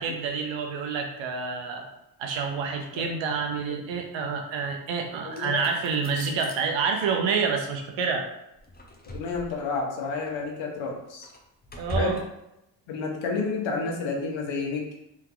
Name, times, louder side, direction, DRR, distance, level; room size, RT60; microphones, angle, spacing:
voice 1, 0.0-1.8 2.2-8.3 11.8-12.2, right 5 dB, 70° right, 3 dB, 1.0 m, -28 dB
voice 2, 5.2-5.6 9.1-11.3 11.9-12.2 12.9-14.9, left 4 dB, 70° left, 0 dB, 1.1 m, -30 dB
sound 1, 5.3-6.6 8.6-9.7 10.3-10.4 10.8-12.2, equal, 20° left, 0.8 m, -37 dB
3.6 x 2.9 x 3.8 m, 0.86 s
supercardioid pair, 75°, 47 cm